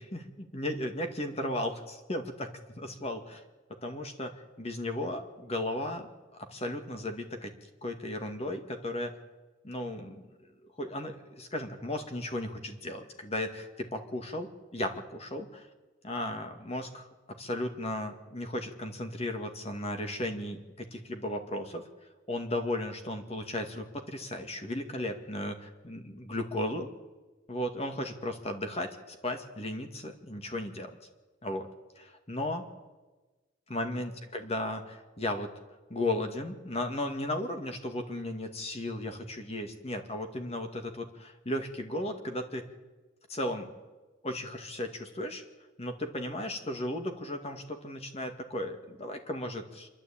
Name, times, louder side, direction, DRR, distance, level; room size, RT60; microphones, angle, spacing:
voice 1, 0.0-2.5 2.8-3.4 3.8-6.1 6.5-7.5 7.8-9.1 9.6-10.2 10.8-15.7 16.0-17.1 17.4-21.8 22.3-26.9 27.5-30.9 31.4-31.7 32.0-32.6 33.7-35.5 35.9-42.6 43.3-43.7 44.2-45.4 45.8-49.9, left 1 dB, 35° left, 6 dB, 2.1 m, -35 dB
26.5 x 12.0 x 8.8 m, 1.2 s
head